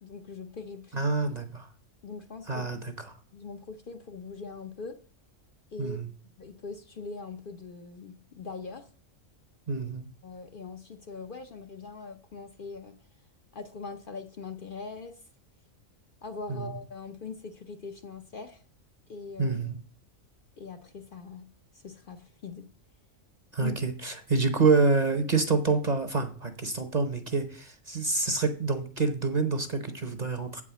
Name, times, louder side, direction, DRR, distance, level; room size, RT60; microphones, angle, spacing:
voice 1, 0.0-1.1 2.0-2.7 3.3-4.9 5.7-6.0 6.4-8.9 10.2-13.0 13.5-15.2 16.2-18.6 19.1-19.6 20.6-21.5 21.7-22.7 23.6-23.8, left 4 dB, 50° left, 5 dB, 0.8 m, -41 dB
voice 2, 0.9-1.7 2.5-3.1 5.8-6.1 9.7-10.1 16.5-16.8 19.4-19.8 23.5-30.6, right 4 dB, 35° right, 8 dB, 0.9 m, -27 dB
8.2 x 4.9 x 6.9 m, 0.41 s
omnidirectional pair, 1.3 m